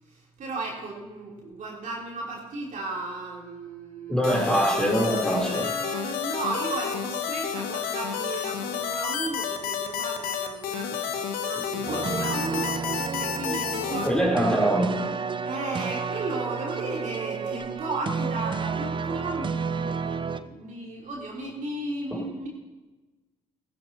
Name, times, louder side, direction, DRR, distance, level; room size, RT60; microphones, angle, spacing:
voice 1, 0.1-4.4 5.4-14.7 15.4-22.5, right 2 dB, 50° right, 3.6 m, -35 dB
voice 2, 4.1-5.7 14.1-15.0 22.1-22.3, right 1 dB, 5° left, 3.7 m, -23 dB
sound 1, 4.2-14.1, left 8 dB, 70° left, 1.1 m, -30 dB
sound 2, 11.9-20.4, right 5 dB, 30° right, 0.8 m, -31 dB
15.0 x 14.5 x 3.0 m
hypercardioid pair, 45°, 16 cm